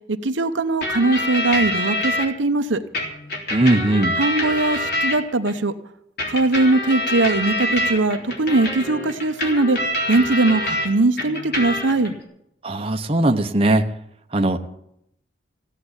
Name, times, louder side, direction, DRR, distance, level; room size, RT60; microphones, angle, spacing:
voice 1, 0.1-2.8 4.2-5.7 6.3-9.8 10.1-12.1, right 2 dB, 80° right, 8 dB, 1.0 m, -20 dB
sound 1, 0.8-2.3 2.9-5.5 6.2-10.9 11.2-12.1, left 1 dB, 55° left, 3.6 m, -25 dB
voice 2, 3.5-4.2 12.6-13.8 14.3-14.7, right 1 dB, 30° right, 4 dB, 0.9 m, -19 dB
16.0 x 7.6 x 9.9 m, 0.76 s
head